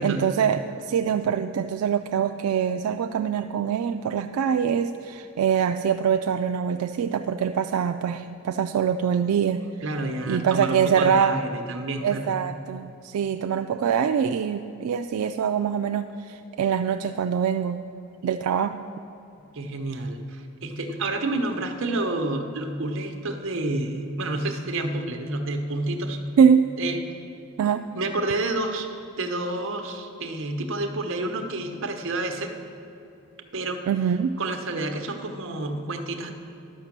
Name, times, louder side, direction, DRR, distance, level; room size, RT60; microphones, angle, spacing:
voice 1, 0.0-9.6 10.3-11.4 12.0-17.8 18.2-18.8 26.4-26.7 27.6-27.8 33.9-34.3, right 7 dB, 80° right, 7 dB, 0.3 m, -24 dB
voice 2, 9.8-12.3 19.5-26.2 26.8-27.0 27.9-28.9 29.2-32.5 33.5-33.8 34.4-36.3, right 2 dB, 60° right, 5 dB, 0.9 m, -29 dB
11.0 x 5.9 x 7.3 m, 2.8 s
head